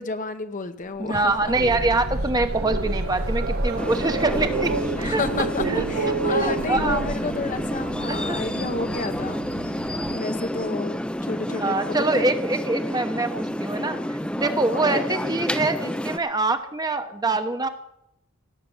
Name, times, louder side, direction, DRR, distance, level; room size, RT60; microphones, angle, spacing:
voice 1, 0.0-1.5 2.9-3.0 5.0-9.8 10.1-12.2 14.7-15.2, left 3 dB, 35° left, 9 dB, 0.8 m, -31 dB
sound 1, 0.9-8.7 9.9-10.0 10.4-10.5, right 1 dB, 55° right, 2.3 m, -32 dB
voice 2, 1.0-4.7 5.0-5.2 5.6-5.8 6.3-7.0 8.1-8.4 11.5-17.7, right 2 dB, 20° right, 8 dB, 0.9 m, -25 dB
sound 2, 1.5-10.2, right 4 dB, 85° right, 0.6 m, -31 dB
sound 3, 3.8-16.2, equal, 5° left, 0.6 m, -29 dB
17.0 x 6.7 x 8.9 m, 0.79 s
head